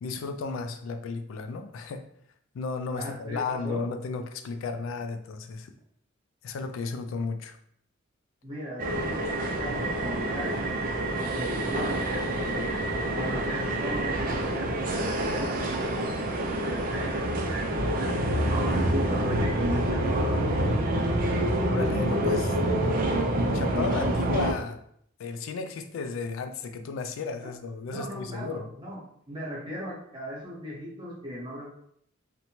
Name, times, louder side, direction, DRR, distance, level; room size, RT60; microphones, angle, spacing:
voice 1, 0.0-2.1 2.5-5.7 6.4-7.6 21.7-22.6 23.5-24.8 25.2-28.7, left 4 dB, 85° left, 8 dB, 0.3 m, -34 dB
voice 2, 2.9-3.8 8.4-9.2 9.6-10.7 11.2-17.9 18.5-20.7 27.9-29.0 29.3-31.7, equal, 25° right, -4 dB, 0.8 m, -37 dB
sound 1, 8.8-24.5, right 1 dB, 45° right, 0.4 m, -27 dB
2.6 x 2.1 x 2.9 m, 0.67 s
head